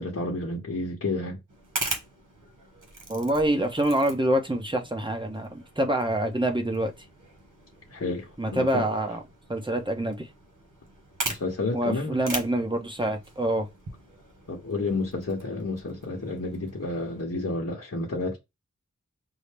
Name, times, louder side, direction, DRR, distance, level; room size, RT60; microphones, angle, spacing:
voice 1, 0.0-1.4 7.9-8.9 11.3-12.2 14.5-18.4, left 2 dB, 50° left, 0.9 m, -30 dB
sound 1, 1.5-17.2, right 3 dB, 75° right, 1.1 m, -40 dB
voice 2, 3.1-6.9 8.4-9.2 9.5-10.3 11.7-13.7, right 1 dB, 15° right, 0.9 m, -26 dB
5.4 x 2.1 x 3.3 m
wide cardioid pair, 50°, 31 cm